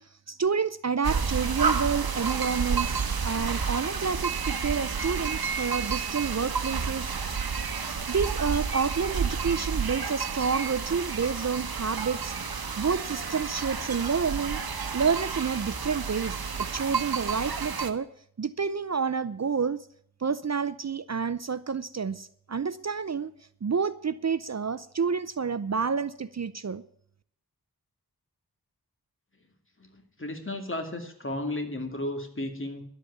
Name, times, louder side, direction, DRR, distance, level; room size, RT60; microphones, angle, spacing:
voice 1, 0.3-7.1 7.8-12.3 12.8-14.6 14.9-18.1 18.4-19.9 20.2-23.3 23.6-26.8, right 6 dB, 45° right, 15 dB, 0.6 m, -29 dB
sound 1, 1.0-17.9, right 5 dB, 70° right, 1.3 m, -30 dB
voice 2, 29.8-32.8, left 1 dB, 35° left, 5 dB, 2.8 m, -34 dB
11.5 x 8.3 x 8.4 m, 0.64 s
wide cardioid pair, 55°, 38 cm